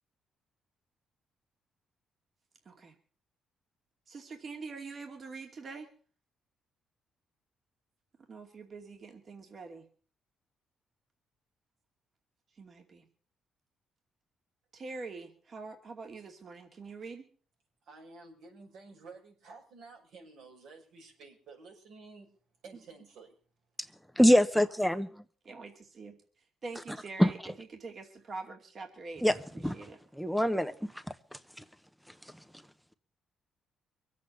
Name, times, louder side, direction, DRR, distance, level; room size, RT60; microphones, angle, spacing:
voice 1, 4.1-5.9 8.3-9.8 12.6-13.1 14.7-17.2 25.4-26.1 26.6-29.4 29.7-30.0, right 3 dB, 45° right, 3 dB, 2.5 m, -44 dB
voice 2, 17.8-22.3 22.6-23.3, right 4 dB, 80° right, 1 dB, 6.0 m, -52 dB
voice 3, 24.2-25.1 27.2-27.3 29.2-29.3 29.6-29.8 30.2-30.7, equal, ahead, 12 dB, 0.8 m, -23 dB
23.5 x 8.4 x 6.8 m, 0.44 s
cardioid pair, 90°, 0 cm